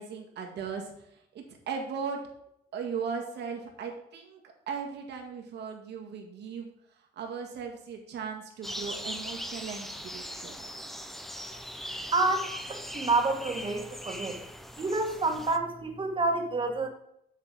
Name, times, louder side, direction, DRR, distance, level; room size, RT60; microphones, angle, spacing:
voice 1, 0.0-2.2 2.7-10.6, right 6 dB, 80° right, 2 dB, 1.9 m, -38 dB
sound 1, 8.6-15.6, equal, ahead, 0.7 m, -40 dB
voice 2, 12.1-14.4 14.8-16.9, right 3 dB, 30° right, 4 dB, 1.6 m, -28 dB
7.6 x 6.7 x 4.9 m, 0.75 s
cardioid pair, 120°, 17 cm